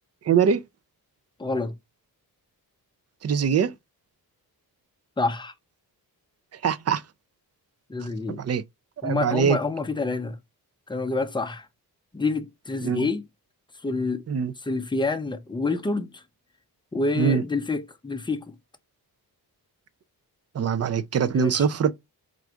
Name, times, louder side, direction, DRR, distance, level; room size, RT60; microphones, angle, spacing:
voice 1, 0.2-0.6 3.2-3.7 6.6-7.0 8.3-8.6 9.0-9.6 12.8-13.0 14.3-14.5 17.2-17.4 20.5-21.9, right 7 dB, 40° right, 0.5 m, -22 dB
voice 2, 1.4-1.7 5.2-5.5 7.9-8.4 9.0-10.4 10.9-11.7 12.1-13.2 13.8-14.2 14.6-16.2 16.9-18.5 21.3-21.6, left 3 dB, 15° left, 0.5 m, -27 dB
4.7 x 2.6 x 4.5 m
wide cardioid pair, 140°, 38 cm